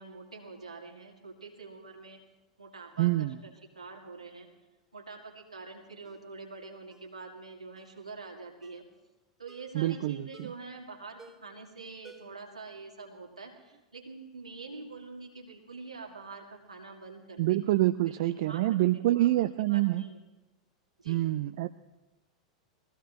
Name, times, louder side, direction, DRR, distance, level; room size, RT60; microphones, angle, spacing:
voice 1, 0.0-2.2 2.6-4.5 4.9-8.8 9.4-17.6 18.0-20.2 21.0-21.3, right 3 dB, 80° right, 1 dB, 2.0 m, -45 dB
voice 2, 3.0-3.4 9.7-10.5 17.4-20.1 21.1-21.7, right 16 dB, 50° right, 11 dB, 0.4 m, -26 dB
Ringtone, 6.0-6.3 6.9-7.1 7.8-8.0 8.6-8.9 9.5-9.8 10.3-10.7 11.2-11.6 12.0-12.5 12.8-12.9, right 3 dB, 10° right, 1.5 m, -55 dB
22.0 x 15.0 x 3.0 m, 1.1 s
figure-of-eight pair, 90°, 3 cm